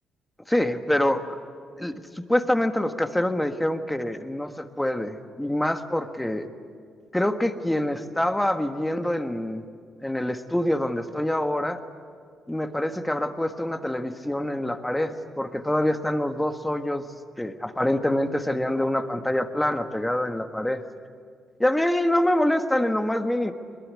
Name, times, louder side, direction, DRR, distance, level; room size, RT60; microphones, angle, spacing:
voice 1, 0.5-1.4 1.8-1.9 2.3-6.5 7.1-9.6 10.0-11.8 12.5-17.0 17.4-20.8 21.6-23.5, left 1 dB, 5° left, 7 dB, 1.6 m, -25 dB
22.0 x 21.5 x 9.8 m, 2.1 s
cardioid pair, 90°, 0 cm